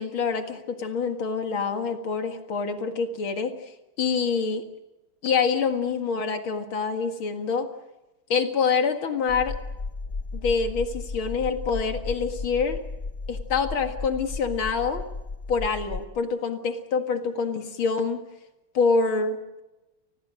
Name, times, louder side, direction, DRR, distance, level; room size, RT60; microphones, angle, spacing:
voice 1, 0.0-3.7 4.0-4.6 5.2-7.7 8.3-9.6 10.3-12.8 13.3-15.1 15.5-18.2 18.7-19.6, left 5 dB, 70° left, 6 dB, 2.6 m, -26 dB
sound 1, 9.3-16.1, left 3 dB, 35° left, 1.1 m, -34 dB
29.0 x 21.0 x 6.4 m, 1.0 s
omnidirectional pair, 2.4 m